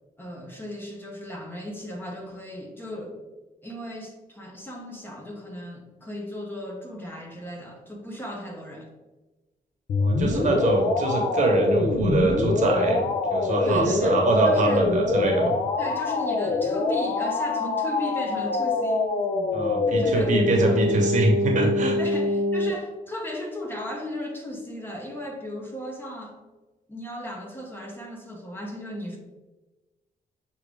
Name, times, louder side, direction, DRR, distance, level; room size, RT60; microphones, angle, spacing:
voice 1, 0.2-3.2 3.6-8.9 13.7-14.9 15.8-19.2 20.0-20.3 20.6-20.8 22.0-26.4 26.9-29.2, left 1 dB, 15° left, 0 dB, 0.6 m, -36 dB
sound 1, 9.9-22.7, left 3 dB, 55° left, 0.5 m, -25 dB
voice 2, 10.0-13.0 13.3-15.5 19.5-22.0, right 2 dB, 50° right, 0 dB, 0.9 m, -23 dB
6.2 x 2.4 x 3.4 m, 1.1 s
wide cardioid pair, 165°, 16 cm